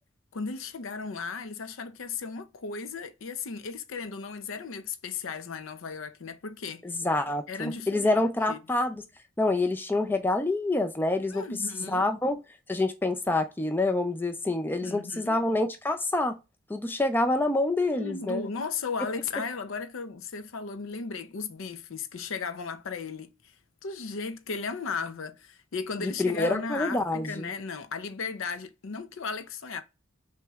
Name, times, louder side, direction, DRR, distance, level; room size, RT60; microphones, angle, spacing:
voice 1, 0.3-6.8 7.5-8.1 8.5-8.6 11.3-12.0 14.8-15.4 17.9-23.3 23.8-29.8, left 5 dB, 70° left, 0.5 m, -35 dB
voice 2, 6.8-9.0 9.4-11.4 11.9-12.4 12.7-16.4 16.7-18.4 26.0-27.5, left 2 dB, 10° left, 0.3 m, -27 dB
5.9 x 3.0 x 2.3 m
head